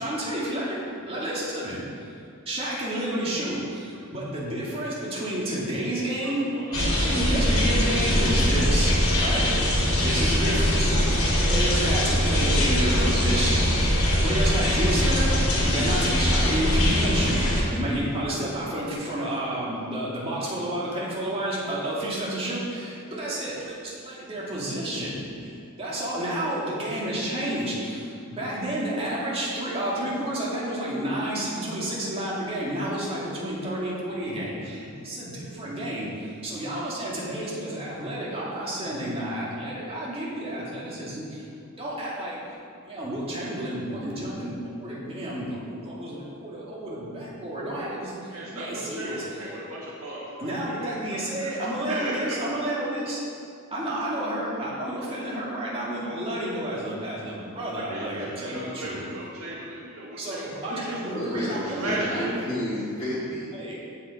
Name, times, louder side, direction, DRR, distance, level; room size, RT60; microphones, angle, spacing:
voice 1, 0.0-1.8 2.5-6.6 7.0-9.5 10.0-25.5 25.8-41.4 41.8-42.4 42.9-49.2 50.4-53.2 53.7-59.0 60.2-62.1 63.5-63.8, right 1 dB, 30° right, -6 dB, 2.4 m, -30 dB
voice 2, 6.2-7.1 48.3-51.5 51.9-52.3 57.7-60.9 61.8-62.3, right 1 dB, 90° right, -5 dB, 1.7 m, -36 dB
sound 1, 6.7-17.6, equal, 80° left, 2.6 m, -22 dB
voice 3, 61.1-63.5, equal, 25° left, -13 dB, 2.5 m, -30 dB
15.5 x 5.5 x 4.2 m, 2.4 s
head